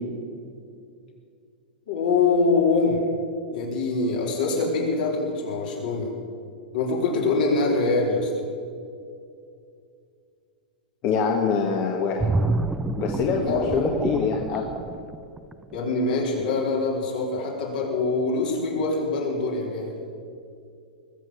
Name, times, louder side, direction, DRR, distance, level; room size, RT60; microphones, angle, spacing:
voice 1, 1.9-3.0 3.5-6.1 6.7-8.3 13.4-13.8 15.7-20.0, left 3 dB, 70° left, -2 dB, 4.3 m, -24 dB
voice 2, 11.0-12.3 13.0-14.6, left 5 dB, 40° left, 1 dB, 1.6 m, -24 dB
sound 1, 12.2-15.8 16.2-16.4, right 2 dB, 10° right, 0.5 m, -28 dB
21.0 x 7.5 x 7.2 m, 2.4 s
hypercardioid pair, 130°, 5 cm